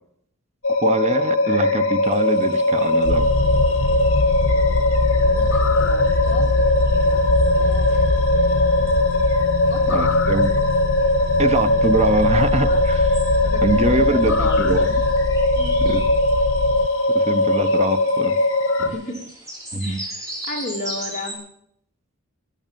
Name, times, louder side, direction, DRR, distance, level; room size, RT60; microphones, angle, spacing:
sound 1, 0.6-18.9, left 2 dB, 65° left, 2.4 m, -20 dB
voice 1, 0.8-3.3 9.9-10.5 11.4-13.1 13.6-14.9 15.8-16.0 17.1-18.4 19.7-20.0, right 2 dB, 30° right, 10 dB, 0.8 m, -23 dB
sound 2, 2.0-21.3, right 1 dB, 15° right, 7.7 m, -41 dB
sound 3, 3.0-16.9, left 2 dB, 90° left, 0.9 m, -24 dB
voice 2, 5.3-9.0 9.7-10.2 12.3-12.8 13.4-13.7 13.9-15.0 15.5-16.0 18.8-19.4 19.8-20.2 20.4-21.5, left 2 dB, 35° left, 0 dB, 3.2 m, -35 dB
14.5 x 9.9 x 9.1 m, 0.72 s
head